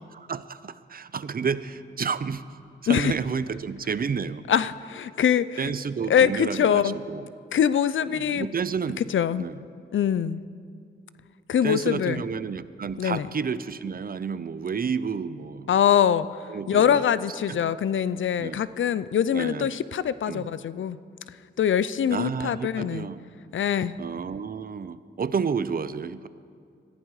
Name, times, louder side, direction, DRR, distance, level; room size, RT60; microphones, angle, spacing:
voice 1, 0.1-2.4 2.8-4.5 5.6-7.3 8.1-9.0 9.4-9.6 11.6-15.7 16.5-17.0 17.5-17.6 18.4-18.6 19.3-19.7 20.3-20.5 22.1-23.2 24.0-26.3, right 6 dB, 50° right, 15 dB, 0.6 m, -30 dB
voice 2, 4.5-5.7 6.1-7.0 7.5-8.5 9.0-9.5 9.9-10.4 11.5-12.2 13.0-13.3 15.7-16.3 16.7-21.0 21.6-23.1 23.5-23.9, left 9 dB, 80° left, 16 dB, 0.5 m, -23 dB
21.0 x 14.5 x 4.8 m, 2.3 s
wide cardioid pair, 95°, 20 cm